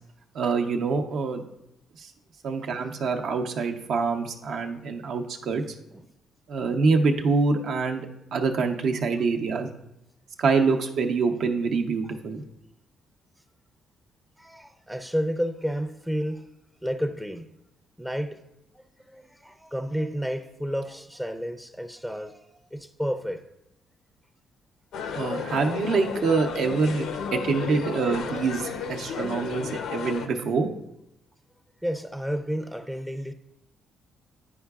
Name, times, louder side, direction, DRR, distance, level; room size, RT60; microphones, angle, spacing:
voice 1, 0.3-1.4 2.0-2.1 2.4-5.6 6.5-9.7 10.4-12.4 25.1-27.1 27.3-30.7, right 4 dB, 70° right, 0.7 m, -25 dB
voice 2, 14.4-16.5 16.8-17.6 18.0-18.4 18.7-23.4 25.0-25.1 31.8-33.3, equal, 5° right, 0.4 m, -31 dB
sound 1, 24.9-30.3, left 6 dB, 80° left, 0.5 m, -33 dB
10.0 x 4.8 x 2.3 m
cardioid pair, 90°, 0 cm